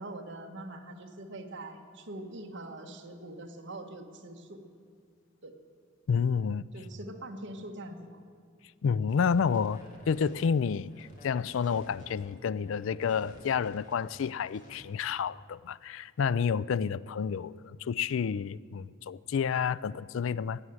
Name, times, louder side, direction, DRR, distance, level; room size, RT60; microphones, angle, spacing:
voice 1, 0.0-4.6 5.4-5.5 6.7-8.2, right 1 dB, 60° right, 1.5 m, -43 dB
voice 2, 6.1-6.7 8.8-20.6, left 6 dB, 65° left, 0.4 m, -30 dB
sound 1, 9.0-14.8, left 1 dB, 40° left, 3.2 m, -53 dB
16.0 x 8.8 x 9.5 m
head